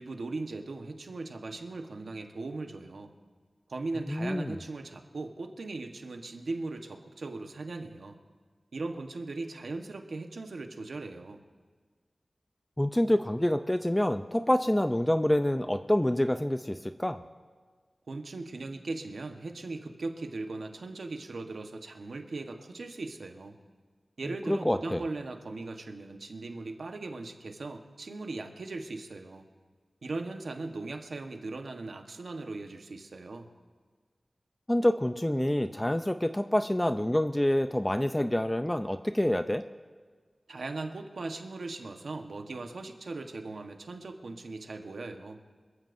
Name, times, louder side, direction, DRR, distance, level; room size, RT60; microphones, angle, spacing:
voice 1, 0.0-3.1 3.7-8.2 8.7-11.4 18.1-23.6 24.2-29.5 30.0-33.5 40.5-45.4, right 3 dB, 90° right, 4 dB, 1.2 m, -39 dB
voice 2, 4.1-4.6 12.8-17.2 24.5-25.0 34.7-39.6, left 1 dB, 15° left, 9 dB, 0.5 m, -27 dB
26.0 x 14.5 x 2.7 m, 1.5 s
wide cardioid pair, 80°, 0 cm